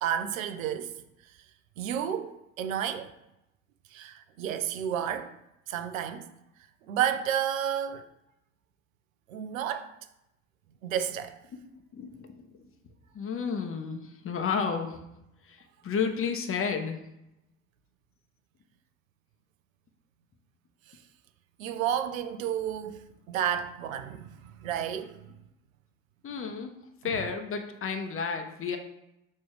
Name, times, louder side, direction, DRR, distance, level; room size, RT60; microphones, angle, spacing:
voice 1, 0.0-1.0 1.8-3.1 3.9-5.3 5.7-6.3 6.9-8.1 9.3-9.9 10.8-11.4 21.6-25.3 27.0-27.1, right 9 dB, 80° right, 0.6 m, -31 dB
voice 2, 11.5-12.7 13.1-15.0 15.4-17.0 26.2-26.8 27.0-28.8, left 6 dB, 35° left, 1.0 m, -32 dB
6.7 x 3.1 x 4.7 m
hypercardioid pair, 60°, 40 cm